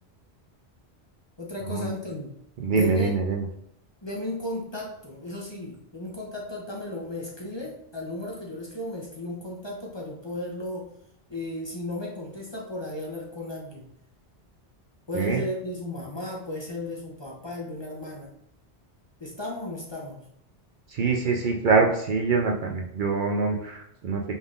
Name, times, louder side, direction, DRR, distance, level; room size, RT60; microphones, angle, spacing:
voice 1, 1.4-2.3 2.7-3.2 4.0-10.9 11.3-13.9 15.1-18.3 19.2-20.2, left 1 dB, 30° left, -2 dB, 0.7 m, -34 dB
voice 2, 2.6-3.4 15.1-15.4 20.9-24.2, right 4 dB, 55° right, 1 dB, 0.6 m, -24 dB
5.4 x 3.6 x 2.4 m, 0.75 s
omnidirectional pair, 1.1 m